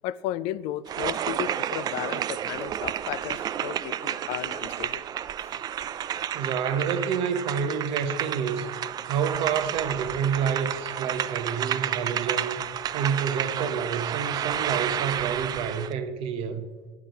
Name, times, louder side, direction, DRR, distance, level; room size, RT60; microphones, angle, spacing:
voice 1, 0.0-5.0, left 13 dB, 65° left, 18 dB, 0.4 m, -34 dB
sound 1, 0.9-15.9, right 10 dB, 40° right, 0.4 m, -31 dB
voice 2, 6.3-8.8 9.1-12.6 12.9-16.7, right 7 dB, 60° right, 8 dB, 1.0 m, -28 dB
9.0 x 6.0 x 5.1 m, 1.4 s
supercardioid pair, 85°, 11 cm